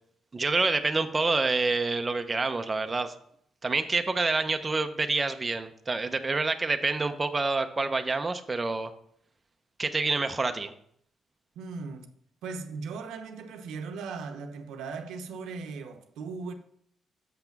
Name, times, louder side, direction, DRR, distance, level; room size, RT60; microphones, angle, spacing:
voice 1, 0.3-3.1 3.6-8.9 9.8-10.7, right 3 dB, 25° right, 0.6 m, -27 dB
voice 2, 11.6-12.1 12.4-16.5, right 4 dB, 85° right, 0.8 m, -38 dB
6.8 x 5.8 x 5.8 m
cardioid pair, 90°, 0 cm